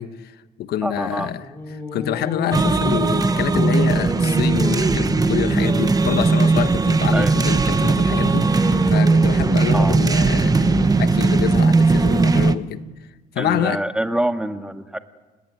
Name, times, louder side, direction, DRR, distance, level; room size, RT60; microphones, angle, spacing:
voice 1, 0.0-12.9 13.3-13.8, left 11 dB, 70° left, 12 dB, 1.3 m, -27 dB
voice 2, 0.8-1.3 7.1-7.3 9.7-10.0 13.4-15.0, right 1 dB, 5° right, 7 dB, 1.7 m, -25 dB
Singing, 1.2-6.6 7.3-11.1, left 1 dB, 15° left, 3.8 m, -30 dB
sound 1, 2.5-12.5, right 3 dB, 20° right, 1.1 m, -18 dB
29.5 x 18.5 x 9.6 m, 1.2 s
cardioid pair, 110°, 17 cm